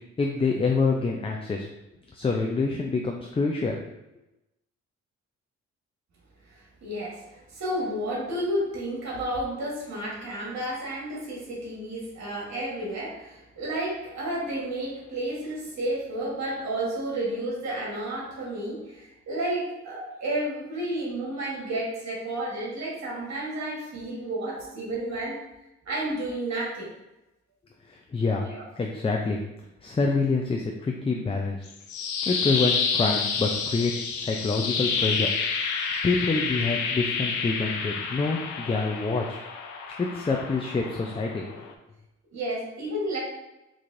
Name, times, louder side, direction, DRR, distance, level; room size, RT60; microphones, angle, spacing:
voice 1, 0.2-1.7 2.1-3.8 28.1-28.4 28.8-29.4 29.8-31.7 32.2-33.9 34.2-35.3 36.0-39.4 40.1-41.5, left 3 dB, 20° left, 2 dB, 0.4 m, -26 dB
voice 2, 6.5-25.4 25.8-26.9 28.4-28.7 42.3-43.2, right 1 dB, 65° right, -4 dB, 1.4 m, -31 dB
sound 1, 31.7-41.7, left 5 dB, 85° left, 0.5 m, -29 dB
4.6 x 2.6 x 2.5 m, 0.94 s
cardioid pair, 60°, 29 cm